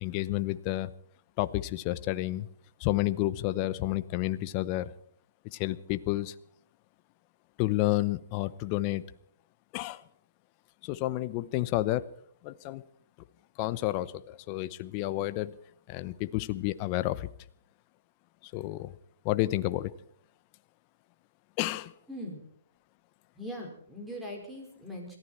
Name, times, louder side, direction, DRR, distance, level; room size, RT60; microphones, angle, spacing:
voice 1, 0.0-0.9 1.4-2.5 2.8-4.9 5.5-6.3 7.6-9.0 9.7-10.0 10.8-12.0 12.4-12.8 13.6-15.6 15.9-17.3 18.5-18.9 19.2-19.9 21.6-21.9, left 17 dB, 30° left, 14 dB, 0.8 m, -30 dB
voice 2, 22.1-22.4 23.3-25.2, equal, 5° right, 0 dB, 4.9 m, -40 dB
22.5 x 14.5 x 4.4 m, 0.62 s
hypercardioid pair, 150°, 0 cm